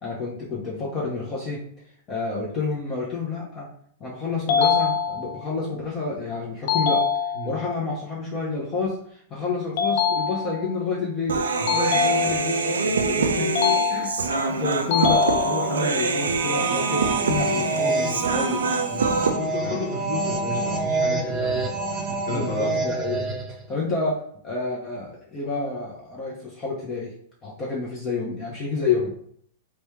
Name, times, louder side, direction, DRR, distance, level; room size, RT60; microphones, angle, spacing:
voice 1, 0.0-1.6 2.1-3.7 4.0-7.0 7.4-13.5 13.9-14.2 14.5-18.6 19.6-19.8 22.3-27.1 27.4-29.1, left 3 dB, 30° left, -5 dB, 0.8 m, -29 dB
sound 1, 4.5-5.5 6.7-7.7 9.8-10.8 11.7-12.7 13.5-14.5 14.9-15.9, left 6 dB, 55° left, 0.5 m, -24 dB
Human voice, 11.3-19.3, right 4 dB, 80° right, 0.4 m, -25 dB
sound 2, 16.2-23.6, right 3 dB, 25° right, 0.6 m, -27 dB
voice 2, 18.9-22.7, left 2 dB, 75° left, -2 dB, 1.0 m, -33 dB
3.1 x 2.3 x 3.1 m, 0.62 s
hypercardioid pair, 105°, 0 cm